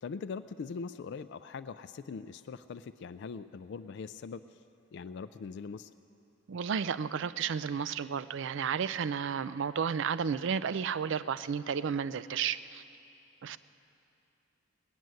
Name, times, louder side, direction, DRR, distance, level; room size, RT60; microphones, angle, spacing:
voice 1, 0.0-4.6 4.9-5.9, left 5 dB, 60° left, 11 dB, 0.3 m, -41 dB
voice 2, 6.5-12.8 13.4-13.6, right 7 dB, 65° right, 16 dB, 0.4 m, -32 dB
19.0 x 7.7 x 9.4 m, 2.7 s
head